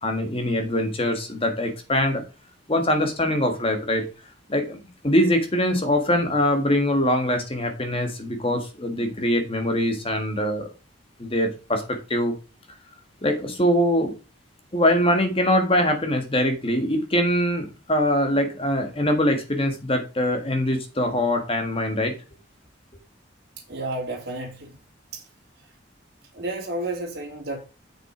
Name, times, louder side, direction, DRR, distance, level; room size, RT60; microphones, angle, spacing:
voice 1, 0.0-2.2 2.7-4.0 4.5-10.7 11.2-12.3 13.2-14.1 14.7-22.1, left 1 dB, 30° left, 1.7 m, -23 dB
voice 2, 23.7-24.7 25.1-25.2 26.3-27.6, right 2 dB, 55° right, 3.0 m, -31 dB
7.4 x 6.4 x 5.0 m
head